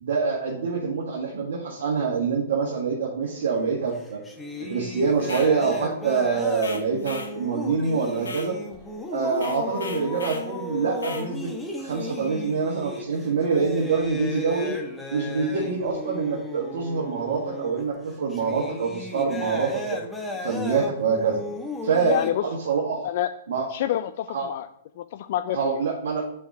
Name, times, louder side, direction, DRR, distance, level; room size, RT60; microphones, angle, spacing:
voice 1, 0.0-4.2 4.7-8.6 9.1-11.5 11.8-14.7 15.1-20.0 20.4-21.4 21.8-22.2 22.4-23.1 23.5-23.7 24.3-24.5 25.5-26.4, right 5 dB, 70° right, -2 dB, 1.6 m, -25 dB
sound 1, 3.2-3.5 3.8-22.3, left 2 dB, 5° left, 1.1 m, -35 dB
sound 2, 5.2-5.5 6.6-7.3 8.2-8.5 9.3-10.5 11.0-11.3, left 4 dB, 80° left, 0.9 m, -38 dB
voice 2, 22.0-22.4 23.0-23.3 23.7-24.7 25.0-25.8, left 12 dB, 55° left, 10 dB, 0.3 m, -27 dB
5.8 x 4.8 x 6.1 m, 0.71 s
hypercardioid pair, 115°, 0 cm